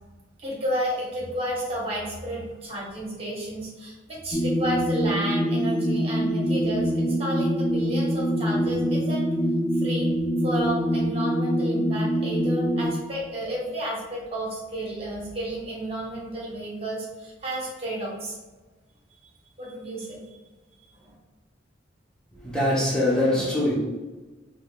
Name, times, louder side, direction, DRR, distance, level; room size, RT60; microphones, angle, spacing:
voice 1, 0.4-9.3 9.8-10.1 10.4-18.4 19.6-20.2 21.0-21.1, equal, 30° right, -4 dB, 1.1 m, -32 dB
sound 1, 4.3-12.9, equal, 55° left, 1.4 m, -24 dB
voice 2, 22.3-23.7, left 1 dB, 5° left, -6 dB, 0.9 m, -23 dB
3.8 x 3.2 x 2.3 m, 1.2 s
head